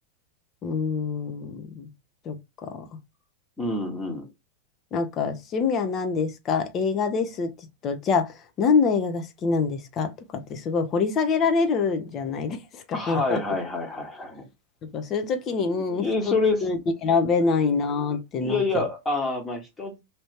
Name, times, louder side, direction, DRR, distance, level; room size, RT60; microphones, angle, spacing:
voice 1, 0.6-1.9 2.3-2.4 2.6-2.8 4.9-7.5 7.8-10.1 10.5-13.4 14.9-18.8, left 5 dB, 30° left, 0.7 m, -25 dB
voice 2, 3.6-4.3 12.9-14.5 15.6-16.6 18.4-20.0, left 3 dB, 15° left, 1.2 m, -27 dB
2.9 x 2.7 x 3.4 m
figure-of-eight pair, 90°, 0 cm